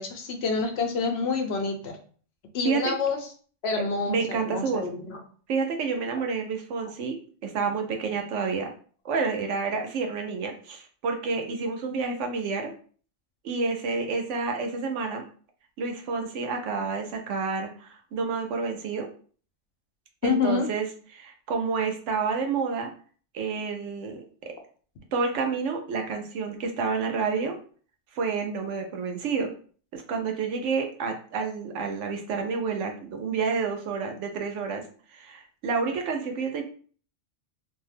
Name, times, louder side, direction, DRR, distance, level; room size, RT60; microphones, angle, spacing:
voice 1, 0.0-2.0 2.5-3.2 3.6-5.2 20.2-20.7, left 4 dB, 65° left, 4 dB, 0.8 m, -27 dB
voice 2, 2.6-2.9 4.1-4.8 5.5-7.2 7.4-8.7 9.0-12.7 13.4-15.2 15.8-19.1 20.2-20.9 21.1-22.9 23.3-24.5 25.1-27.5 28.1-29.5 29.9-34.8 35.1-36.6, right 5 dB, 80° right, 4 dB, 0.9 m, -29 dB
2.6 x 2.2 x 3.3 m, 0.43 s
omnidirectional pair, 1.2 m